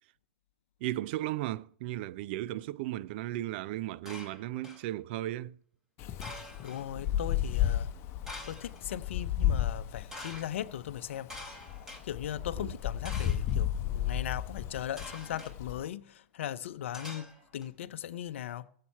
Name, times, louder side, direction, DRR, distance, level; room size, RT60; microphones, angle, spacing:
voice 1, 0.8-5.6 12.6-12.7, right 15 dB, 55° right, 0.5 m, -35 dB
sound 1, 4.1-4.9 6.2-6.8 8.3-8.8 10.1-10.5 11.3-12.0 13.0-13.5 15.0-15.5 16.9-17.7, left 1 dB, 10° right, 4.5 m, -45 dB
Wind, 6.0-15.9, left 10 dB, 40° left, 1.1 m, -33 dB
voice 2, 6.6-7.9 8.5-11.3 12.0-18.7, left 11 dB, 70° left, 0.8 m, -38 dB
18.5 x 7.7 x 4.3 m
hypercardioid pair, 105°, 7 cm